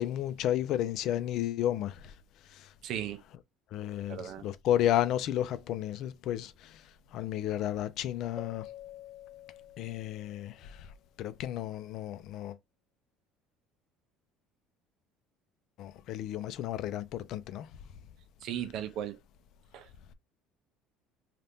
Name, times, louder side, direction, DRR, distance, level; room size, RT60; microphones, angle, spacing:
voice 1, 0.0-2.1 2.4-2.7 3.7-8.7 9.8-10.9 11.2-12.6 15.8-17.7, left 12 dB, 60° left, 0.5 m, -32 dB
voice 2, 2.8-3.2 4.1-4.4 18.4-19.2 19.7-19.9, right 10 dB, 60° right, 0.6 m, -36 dB
Keyboard (musical), 8.4-10.8, left 11 dB, 25° left, 1.3 m, -48 dB
2.8 x 2.4 x 3.5 m
supercardioid pair, 110°, 0 cm